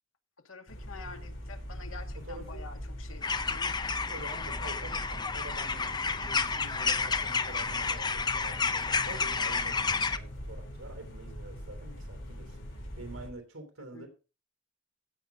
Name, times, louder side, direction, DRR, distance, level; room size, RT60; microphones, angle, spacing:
voice 1, 0.4-3.7 13.8-14.1, left 4 dB, 85° left, 5 dB, 2.2 m, -48 dB
sound 1, 0.7-13.3, equal, 65° left, 4.8 m, -42 dB
voice 2, 2.2-2.6 4.1-14.1, right 2 dB, 85° right, 5 dB, 3.3 m, -47 dB
sound 2, 3.2-10.2, left 5 dB, 20° left, 0.7 m, -31 dB
16.0 x 6.0 x 5.1 m, 0.33 s
head